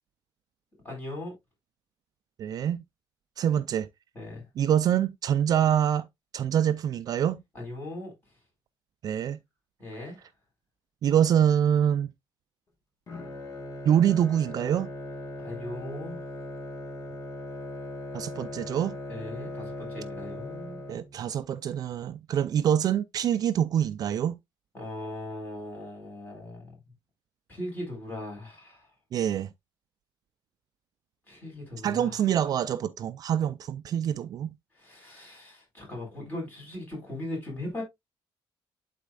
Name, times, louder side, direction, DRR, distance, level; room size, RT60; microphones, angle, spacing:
voice 1, 0.8-1.3 4.1-4.5 7.5-8.1 9.8-10.2 15.4-16.2 19.1-20.8 24.7-26.8 27.5-28.9 31.3-32.2 34.7-37.8, left 1 dB, 20° left, 4.5 m, -39 dB
voice 2, 2.4-2.8 3.4-3.9 4.6-6.1 6.3-7.4 9.0-9.4 11.0-12.1 13.8-14.9 18.1-19.0 20.9-24.4 29.1-29.5 31.8-34.5, right 9 dB, 45° right, 0.4 m, -25 dB
Bowed string instrument, 13.1-21.4, left 1 dB, 40° left, 1.6 m, -39 dB
11.5 x 4.2 x 2.4 m
cardioid pair, 160°, 9 cm